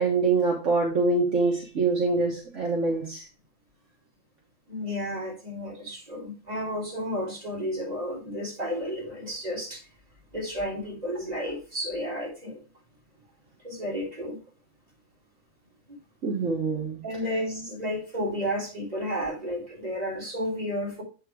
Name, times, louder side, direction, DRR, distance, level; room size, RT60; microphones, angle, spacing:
voice 1, 0.0-3.2 16.2-17.0, right 3 dB, 55° right, -2 dB, 1.7 m, -25 dB
voice 2, 4.7-9.8 10.3-12.6 13.6-14.4 15.9-16.0 17.0-21.0, equal, 25° right, -4 dB, 3.9 m, -32 dB
8.1 x 4.4 x 4.7 m, 0.34 s
omnidirectional pair, 1.5 m